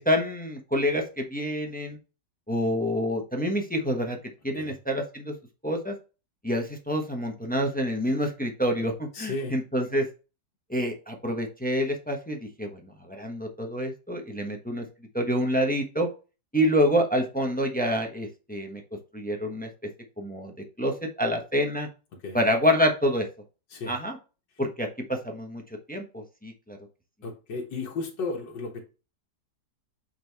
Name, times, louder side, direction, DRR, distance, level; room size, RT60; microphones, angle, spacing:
voice 1, 0.0-2.0 2.5-4.2 4.4-5.3 5.6-5.9 6.4-10.1 10.7-14.8 15.1-16.1 16.5-18.8 19.1-19.7 20.2-21.9 22.3-23.3 23.9-24.2 24.6-25.6 25.9-26.8, equal, 5° left, 0.8 m, -27 dB
voice 2, 9.1-9.6 22.2-22.4 23.7-23.9 27.2-28.8, left 3 dB, 85° left, 2.0 m, -34 dB
7.9 x 3.9 x 3.4 m
omnidirectional pair, 1.9 m